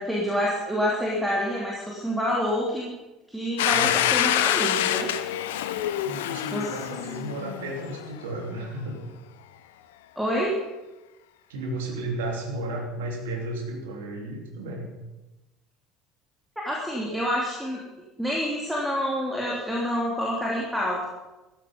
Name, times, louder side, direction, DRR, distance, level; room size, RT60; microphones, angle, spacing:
voice 1, 0.0-2.9 3.3-5.1 6.5-6.7 10.1-10.6 16.6-17.8 18.2-21.1, equal, ahead, -4 dB, 3.3 m, -27 dB
Domestic sounds home sounds, 3.6-8.2, left 12 dB, 65° left, 0.7 m, -26 dB
voice 2, 3.7-4.0 6.0-9.1 11.5-14.9, right 1 dB, 70° right, 1 dB, 3.1 m, -33 dB
14.5 x 14.0 x 5.3 m, 1.1 s
figure-of-eight pair, 65°, 0 cm